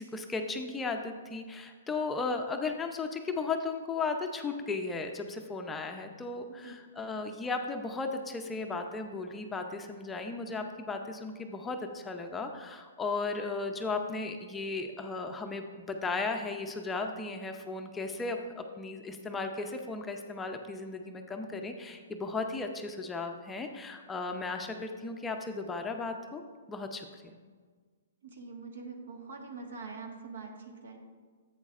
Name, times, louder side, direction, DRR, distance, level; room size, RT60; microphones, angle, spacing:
voice 1, 0.0-26.4 26.7-27.4, left 3 dB, 10° left, 4 dB, 0.5 m, -35 dB
voice 2, 28.2-31.0, right 4 dB, 75° right, 2 dB, 1.5 m, -44 dB
10.5 x 8.2 x 2.4 m, 1.6 s
hypercardioid pair, 145°, 0 cm